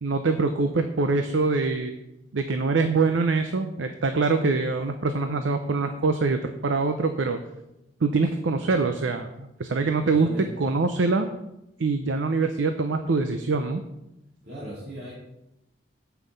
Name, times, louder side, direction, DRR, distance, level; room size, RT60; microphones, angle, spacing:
voice 1, 0.0-1.9 2.3-7.4 8.0-10.3 10.6-11.3 11.8-13.8, right 3 dB, 85° right, 7 dB, 0.6 m, -24 dB
voice 2, 10.0-10.5 14.4-15.1, right 1 dB, 60° right, -10 dB, 2.7 m, -38 dB
8.2 x 5.7 x 5.2 m, 0.88 s
head